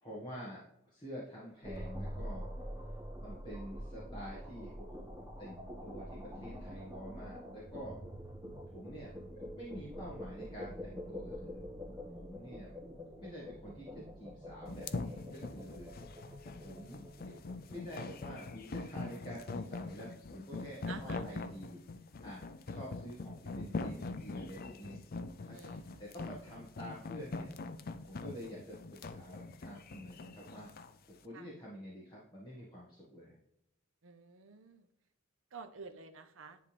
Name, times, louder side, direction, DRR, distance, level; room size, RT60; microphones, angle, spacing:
voice 1, 0.0-2.5 3.2-8.0 8.7-11.6 12.1-12.8 13.0-16.0 16.6-21.8 22.2-22.4 22.7-25.1 25.4-27.5 28.1-30.7 31.0-33.3, equal, 20° left, -6 dB, 1.7 m, -48 dB
sound 1, 1.6-18.9, equal, 15° right, 1.2 m, -46 dB
sound 2, 14.7-30.9, left 3 dB, 45° left, 0.5 m, -42 dB
voice 2, 20.9-21.3 25.5-26.1 31.3-31.5 34.0-34.9 35.5-36.6, right 5 dB, 65° right, 9 dB, 0.7 m, -50 dB
10.0 x 3.5 x 3.4 m, 0.79 s
head